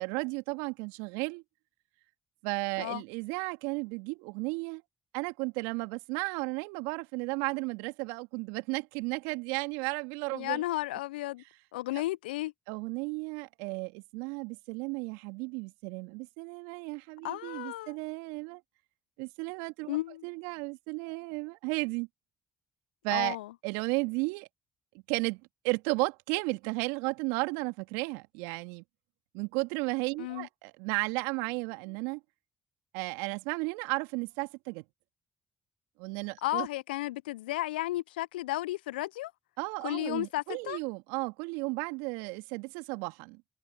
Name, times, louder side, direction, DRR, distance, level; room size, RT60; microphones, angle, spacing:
voice 1, 0.0-1.4 2.4-4.8 5.1-10.6 11.9-12.0 12.7-18.6 19.2-20.0 20.2-22.1 23.0-23.4 23.6-24.5 25.1-28.8 29.3-32.2 32.9-34.8 36.0-36.7 39.6-43.6, right 29 dB, 75° right, 2.4 m, -34 dB
voice 2, 10.3-11.4 11.7-12.5 17.2-17.9 19.9-20.2 23.1-23.5 30.2-30.5 36.4-39.3 39.8-40.8, left 17 dB, 80° left, 0.6 m, -33 dB
figure-of-eight pair, 40°, 5 cm